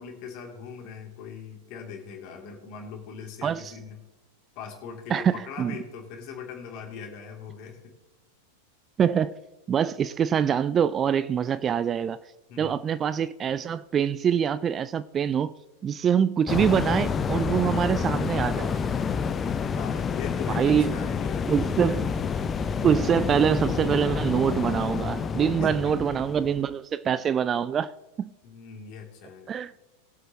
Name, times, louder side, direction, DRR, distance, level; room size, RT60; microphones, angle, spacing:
voice 1, 0.0-4.0 4.5-7.9 12.5-12.8 19.7-21.7 25.6-25.9 28.4-29.5, left 5 dB, 45° left, 2.9 m, -40 dB
voice 2, 3.4-3.7 5.1-5.8 9.0-9.3 9.7-12.2 12.6-15.5 15.8-18.8 20.5-21.0 21.5-22.1 22.8-27.9 28.2-28.3 29.5-29.7, right 8 dB, 25° right, 0.4 m, -24 dB
sound 1, 16.5-26.7, left 6 dB, 20° left, 0.7 m, -28 dB
21.0 x 7.9 x 3.0 m
figure-of-eight pair, 90°, 0 cm